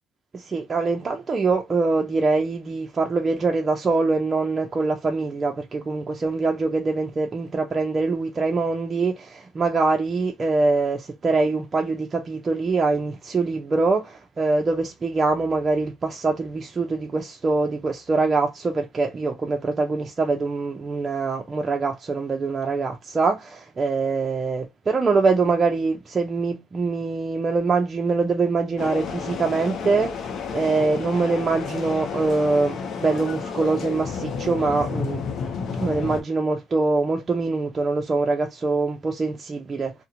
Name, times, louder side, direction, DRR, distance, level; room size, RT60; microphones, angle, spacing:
voice 1, 0.3-35.2 35.8-39.9, right 3 dB, 30° right, 0.5 m, -24 dB
sound 1, 28.8-36.2, left 5 dB, 55° left, 0.6 m, -31 dB
2.4 x 2.1 x 2.8 m
cardioid pair, 100°, 0 cm